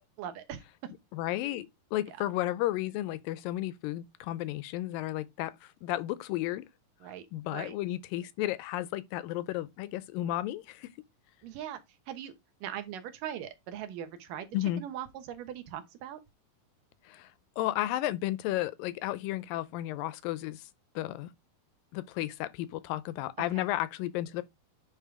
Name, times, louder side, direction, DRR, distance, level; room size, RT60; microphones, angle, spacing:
voice 1, 0.2-0.9 2.1-2.2 7.0-7.3 7.5-7.8 11.4-11.8 12.1-12.3 12.6-16.2 23.5-23.7, right 10 dB, 75° right, 2.6 m, -40 dB
voice 2, 1.1-6.6 7.3-10.9 14.5-14.8 17.1-17.3 17.6-20.6 21.0-21.3 21.9-24.4, left 15 dB, 90° left, 2.4 m, -33 dB
9.1 x 3.6 x 4.9 m
omnidirectional pair, 4.0 m